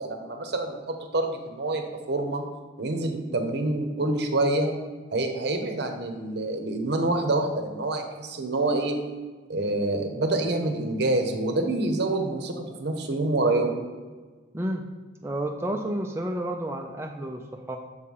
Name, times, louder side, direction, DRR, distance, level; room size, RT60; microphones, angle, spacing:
voice 1, 0.0-2.4 2.8-4.7 5.1-9.0 9.5-13.7, right 2 dB, 60° right, 5 dB, 0.8 m, -27 dB
voice 2, 14.5-14.9 15.2-17.8, right 1 dB, 15° right, 2 dB, 0.3 m, -31 dB
6.7 x 3.2 x 5.3 m, 1.3 s
head